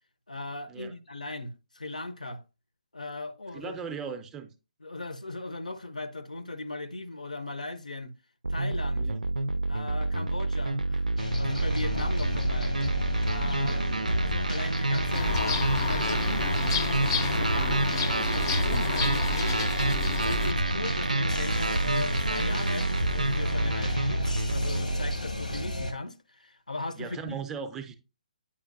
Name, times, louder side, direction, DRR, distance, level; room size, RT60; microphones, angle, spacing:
voice 1, 0.3-2.4 2.9-3.8 4.8-8.1 8.5-9.1 9.7-11.1 11.4-12.8 13.2-13.9 14.2-16.6 17.2-19.7 20.2-27.3, left 2 dB, 70° left, 0.7 m, -38 dB
voice 2, 3.5-4.5 9.0-9.2 13.6-13.9 17.6-17.9 27.0-28.0, right 6 dB, 10° right, 0.5 m, -38 dB
sound 1, 8.4-25.2, right 2 dB, 80° right, 0.3 m, -29 dB
sound 2, 11.2-25.9, equal, 90° left, 1.5 m, -32 dB
sound 3, 15.1-20.5, left 6 dB, 35° left, 0.5 m, -32 dB
8.5 x 4.9 x 2.5 m
figure-of-eight pair, 135°, 4 cm